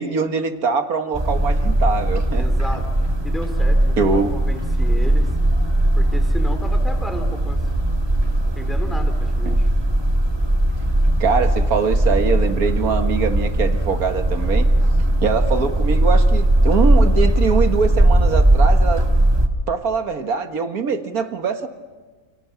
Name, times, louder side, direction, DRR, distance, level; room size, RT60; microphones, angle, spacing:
voice 1, 0.0-2.5 4.0-4.3 9.5-9.6 11.2-14.7 15.2-19.0 19.7-21.7, right 5 dB, 80° right, 7 dB, 2.1 m, -22 dB
sound 1, 1.1-19.5, right 1 dB, 20° right, 1.6 m, -18 dB
voice 2, 2.3-5.3 5.9-7.6 8.5-9.7, left 1 dB, ahead, 5 dB, 3.2 m, -33 dB
29.5 x 29.0 x 6.0 m, 1.3 s
omnidirectional pair, 1.5 m